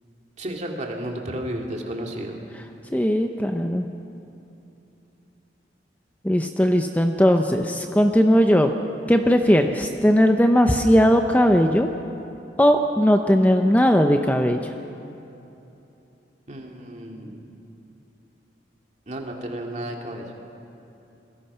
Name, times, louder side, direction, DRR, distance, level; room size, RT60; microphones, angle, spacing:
voice 1, 0.4-2.4 16.5-17.4 19.1-20.3, right 1 dB, 40° right, 1 dB, 2.5 m, -32 dB
voice 2, 2.9-3.8 6.2-8.7 9.1-11.9 12.6-14.6, equal, 10° left, 5 dB, 0.7 m, -18 dB
26.5 x 20.5 x 5.6 m, 2.9 s
head